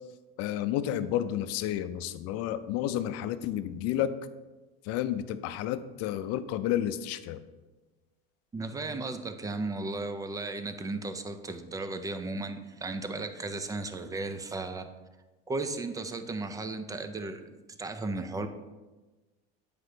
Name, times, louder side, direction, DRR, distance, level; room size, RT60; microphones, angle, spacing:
voice 1, 0.4-4.1 4.8-7.4, left 11 dB, 60° left, 12 dB, 0.5 m, -31 dB
voice 2, 8.5-14.9 15.5-17.5 17.8-18.5, right 3 dB, 10° right, 9 dB, 0.4 m, -35 dB
7.8 x 5.1 x 3.3 m, 1.2 s
cardioid pair, 130°, 29 cm